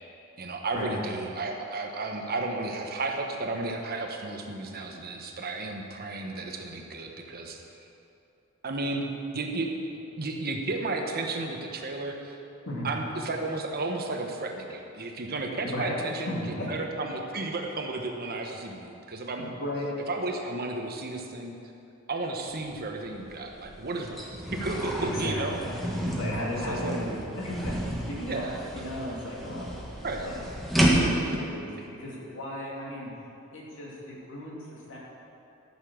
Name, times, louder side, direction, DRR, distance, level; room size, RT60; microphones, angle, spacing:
voice 1, 0.4-7.9 8.6-9.7 9.9-12.4 12.8-19.5 20.1-21.5 22.1-25.6 26.7-27.0 28.2-28.6 30.0-30.3 31.0-31.1, right 2 dB, 45° right, 2 dB, 1.1 m, -33 dB
voice 2, 15.6-16.7 19.4-19.9 25.0-25.8 26.2-27.8 28.1-29.7 30.2-30.4 30.9-33.1 33.5-35.0, left 1 dB, 65° left, -5 dB, 2.9 m, -35 dB
sound 1, 22.6-22.7 23.1-31.4, right 1 dB, ahead, 1.6 m, -30 dB
13.5 x 6.9 x 6.4 m, 2.8 s
head